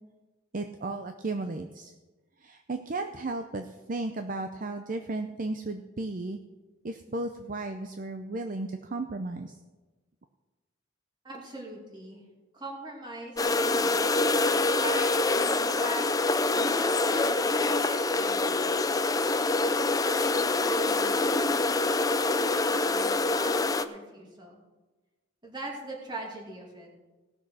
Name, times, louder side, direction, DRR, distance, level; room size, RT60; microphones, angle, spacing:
voice 1, 0.5-1.9 2.4-6.4 6.8-9.6, right 2 dB, 45° right, 7 dB, 0.6 m, -34 dB
voice 2, 11.2-12.2 12.5-14.2 14.8-16.2 16.5-18.7 19.6-21.2 21.5-24.6 25.4-26.9, right 1 dB, 25° right, -1 dB, 2.6 m, -41 dB
sound 1, 13.4-23.9, left 3 dB, 20° left, 0.4 m, -25 dB
17.5 x 6.3 x 6.3 m, 1.2 s
head